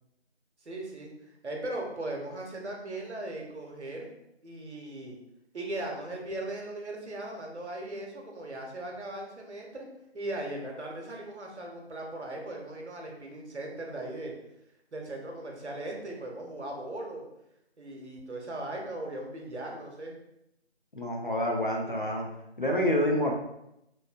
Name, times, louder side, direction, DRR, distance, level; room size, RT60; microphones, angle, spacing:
voice 1, 0.6-1.1 1.4-4.1 4.4-5.2 5.5-9.9 10.1-14.3 14.9-17.3 17.8-20.1, right 1 dB, 80° right, 0 dB, 0.9 m, -38 dB
voice 2, 20.9-22.2 22.6-23.3, equal, 50° left, 0 dB, 0.5 m, -27 dB
3.1 x 2.6 x 2.4 m, 0.84 s
figure-of-eight pair, 180°, 33 cm